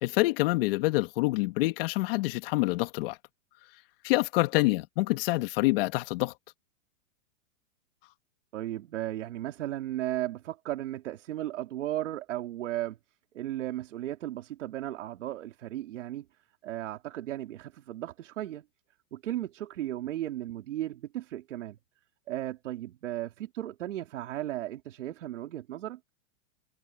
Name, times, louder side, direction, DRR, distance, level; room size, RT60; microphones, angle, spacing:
voice 1, 0.0-3.2 4.0-6.3, left 21 dB, 45° left, 2.2 m, -26 dB
voice 2, 8.5-13.0 13.3-16.3 16.6-18.6 19.1-21.8 22.3-26.0, right 13 dB, 70° right, 2.9 m, -35 dB
hypercardioid pair, 140°, 38 cm